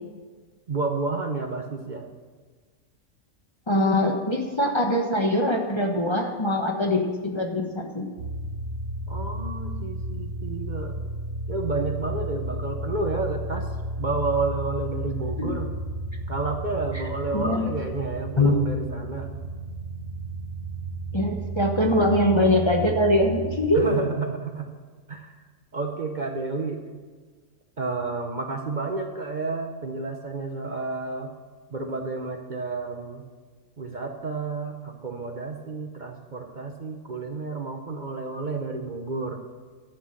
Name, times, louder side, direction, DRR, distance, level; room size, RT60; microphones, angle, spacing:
voice 1, 0.7-2.1 9.1-11.0 11.5-15.7 16.3-19.3 23.7-24.7 25.1-25.4 25.7-26.8 27.8-31.3 31.7-33.2 33.8-39.4, right 3 dB, 40° right, 3 dB, 0.9 m, -30 dB
voice 2, 3.7-8.1 15.4-15.5 16.9-17.0 17.3-17.6 18.4-18.6 21.1-23.9, left 1 dB, 25° left, 2 dB, 1.0 m, -23 dB
sound 1, 8.2-23.8, right 2 dB, 85° right, 2.1 m, -33 dB
11.5 x 7.8 x 6.4 m, 1.4 s
omnidirectional pair, 1.3 m